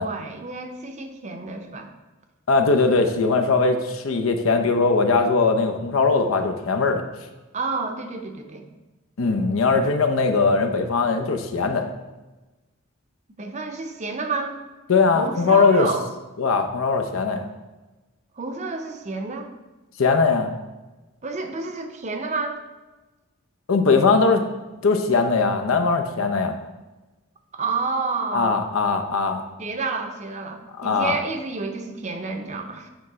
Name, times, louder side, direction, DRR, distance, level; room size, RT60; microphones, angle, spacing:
voice 1, 0.0-1.9 7.5-8.6 13.4-14.6 15.1-16.0 18.4-19.5 21.2-22.6 27.5-28.6 29.6-32.9, right 3 dB, 35° right, 5 dB, 0.6 m, -29 dB
voice 2, 2.5-7.0 9.2-11.9 14.9-15.9 16.4-17.5 20.0-20.5 23.7-24.4 24.8-26.6 28.3-29.4 30.8-31.1, left 4 dB, 85° left, 5 dB, 0.7 m, -20 dB
8.2 x 3.2 x 4.7 m, 1.1 s
head